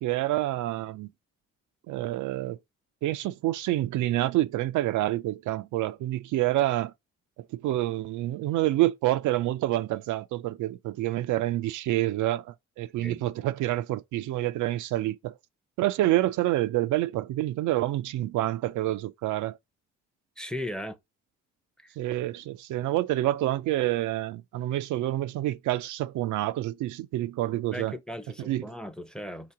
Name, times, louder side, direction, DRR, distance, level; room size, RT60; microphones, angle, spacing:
voice 1, 0.0-1.1 1.9-2.6 3.0-6.9 7.5-15.3 15.8-19.6 22.0-28.0 28.4-28.6, right 15 dB, 80° right, 0.5 m, -27 dB
voice 2, 20.4-21.0 21.8-22.0 27.7-29.5, left 1 dB, 5° left, 0.6 m, -37 dB
3.7 x 2.9 x 4.7 m
cardioid pair, 90°, 30 cm